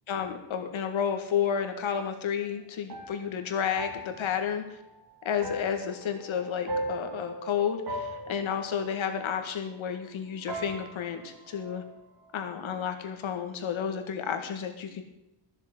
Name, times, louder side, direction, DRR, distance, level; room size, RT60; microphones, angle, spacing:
voice 1, 0.1-4.6 5.2-11.8 12.3-15.0, left 7 dB, 80° left, 6 dB, 1.9 m, -31 dB
sound 1, 1.3-10.2 10.5-12.5, right 1 dB, 50° right, 3.5 m, -40 dB
13.5 x 7.2 x 7.7 m, 0.88 s
wide cardioid pair, 170°, 46 cm